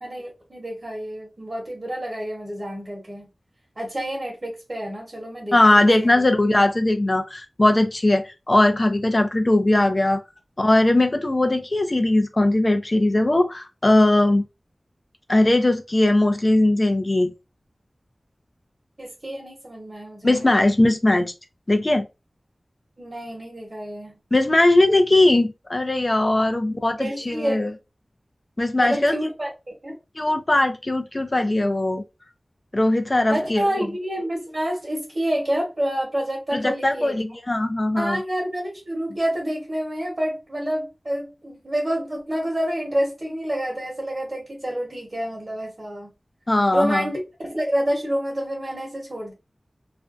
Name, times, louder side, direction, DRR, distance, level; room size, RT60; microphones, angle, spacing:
voice 1, 0.0-3.3 3.8-5.9 19.0-20.5 23.0-24.2 27.0-27.7 28.8-29.9 33.3-37.2 38.0-46.1 46.7-49.3, equal, 45° right, 1.0 m, -28 dB
voice 2, 5.5-10.2 10.6-14.4 15.3-17.3 20.2-21.3 21.7-22.1 24.3-27.7 28.6-29.1 30.2-32.0 32.7-33.6 36.5-38.2 46.5-47.1, left 1 dB, 40° left, 0.4 m, -19 dB
2.4 x 2.1 x 2.5 m
wide cardioid pair, 70°, 0 cm